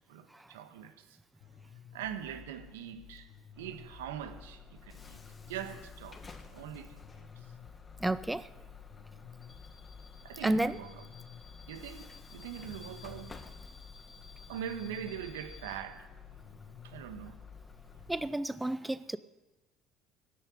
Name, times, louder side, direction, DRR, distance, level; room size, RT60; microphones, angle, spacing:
voice 1, 0.1-1.2 1.9-3.3 3.6-5.2 5.5-7.3 10.2-11.1 11.7-13.4 14.5-16.1 16.8-17.4, right 9 dB, 80° right, 8 dB, 1.4 m, -42 dB
sound 1, 1.4-18.3, left 8 dB, 60° left, 1.2 m, -53 dB
Bus / Alarm, 3.6-18.2, left 3 dB, 25° left, 1.8 m, -53 dB
voice 2, 8.0-8.5 10.4-10.8 18.1-19.2, right 1 dB, 10° right, 15 dB, 0.6 m, -31 dB
15.0 x 7.3 x 10.0 m, 1.1 s
hypercardioid pair, 70°, 0 cm